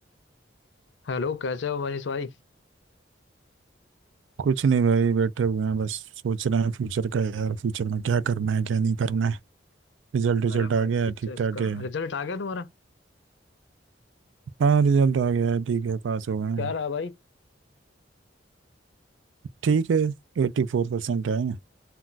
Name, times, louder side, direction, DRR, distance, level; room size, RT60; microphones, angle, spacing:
voice 1, 1.0-2.3 10.5-10.9 11.3-12.7 16.6-17.1, left 5 dB, 70° left, 0.5 m, -31 dB
voice 2, 4.4-9.4 10.1-11.9 14.6-16.7 19.6-21.6, right 6 dB, 85° right, 0.4 m, -24 dB
2.3 x 2.3 x 3.9 m
head